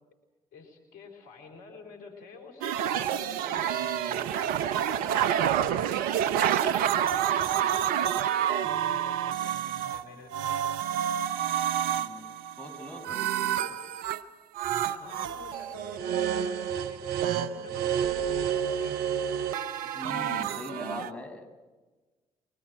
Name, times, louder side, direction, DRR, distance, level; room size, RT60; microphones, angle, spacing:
voice 1, 0.5-6.1 6.4-11.1 14.9-19.2, left 4 dB, 75° left, 3 dB, 4.5 m, -48 dB
sound 1, 2.6-10.0 10.3-14.2 14.6-21.1, right 10 dB, 75° right, 0.9 m, -29 dB
voice 2, 11.8-13.8 19.9-21.5, left 1 dB, 10° left, 3 dB, 7.6 m, -42 dB
24.5 x 24.0 x 7.7 m, 1.2 s
hypercardioid pair, 45°, 15 cm